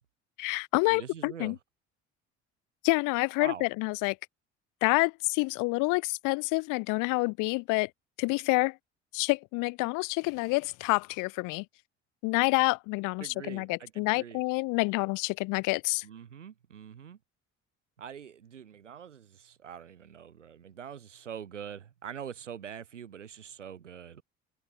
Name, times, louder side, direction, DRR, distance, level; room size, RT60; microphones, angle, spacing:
voice 1, 0.4-1.6 2.8-4.2 4.8-7.9 8.2-8.8 9.1-11.6 12.2-16.0, left 26 dB, 60° left, 1.1 m, -28 dB
voice 2, 0.9-1.5 3.4-3.6 13.2-14.4 16.0-17.2 18.0-24.2, right 8 dB, 85° right, 4.7 m, -44 dB
figure-of-eight pair, 55°, 36 cm